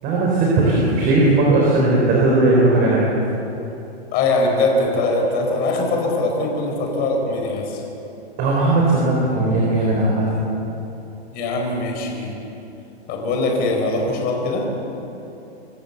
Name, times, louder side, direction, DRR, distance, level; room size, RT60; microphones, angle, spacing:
voice 1, 0.0-3.1 8.4-10.5, right 2 dB, 30° right, -3 dB, 4.1 m, -17 dB
voice 2, 4.1-7.8 11.3-12.3 13.1-14.7, left 2 dB, 30° left, 1 dB, 4.5 m, -21 dB
25.0 x 13.5 x 8.0 m, 2.9 s
hypercardioid pair, 145°, 33 cm